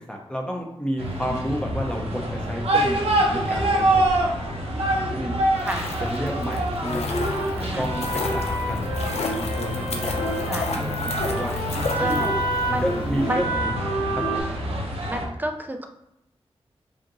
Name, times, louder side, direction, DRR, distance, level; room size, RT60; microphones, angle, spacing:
voice 1, 0.1-4.1 4.8-5.3 6.0-7.1 7.8-8.1 8.3-9.0 9.3-11.6 12.0-12.2 12.8-13.5 14.1-14.4, equal, 10° left, 1 dB, 0.8 m, -31 dB
sound 1, 1.0-15.3, right 1 dB, 75° right, 0.9 m, -26 dB
sound 2, 5.4-12.6 12.9-13.0, left 3 dB, 85° left, 0.5 m, -33 dB
sound 3, 6.8-14.4, equal, 65° left, 1.1 m, -29 dB
voice 2, 7.6-7.9 10.4-10.7 12.0-12.3 12.7-13.8 15.1-15.9, right 1 dB, 15° right, 5 dB, 0.5 m, -31 dB
5.0 x 2.5 x 3.0 m, 0.85 s
wide cardioid pair, 95°, 10 cm